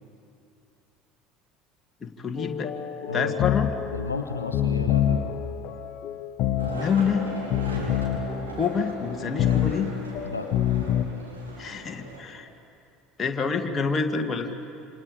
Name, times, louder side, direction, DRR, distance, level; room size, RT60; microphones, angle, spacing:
voice 1, 2.0-2.8 3.1-3.7 6.7-7.3 8.6-10.0 11.6-12.5 13.2-14.5, left 6 dB, 30° left, 4 dB, 1.9 m, -27 dB
sound 1, 2.4-11.0, left 10 dB, 50° left, 1.1 m, -27 dB
voice 2, 3.1-3.5 3.9-5.3 7.6-8.0 10.2-10.5, left 3 dB, 85° left, 7 dB, 0.8 m, -33 dB
Skateboard, 6.6-12.2, right 2 dB, 85° right, 3.7 m, -39 dB
27.5 x 26.5 x 5.2 m, 2.6 s
figure-of-eight pair, 65°, 0 cm